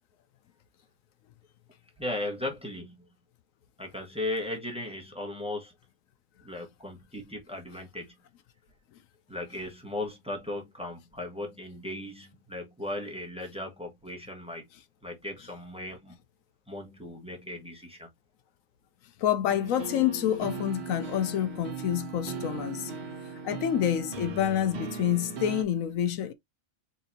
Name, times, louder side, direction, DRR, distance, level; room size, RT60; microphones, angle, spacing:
voice 1, 2.0-3.1 3.8-5.7 6.4-8.1 9.3-14.6 15.0-16.1 16.7-18.1, left 1 dB, 5° right, 1.2 m, -37 dB
voice 2, 19.2-22.9 23.4-26.3, left 10 dB, 80° left, 1.0 m, -28 dB
sound 1, 19.5-25.6, right 5 dB, 55° right, 1.0 m, -38 dB
4.2 x 3.8 x 2.8 m
omnidirectional pair, 1.4 m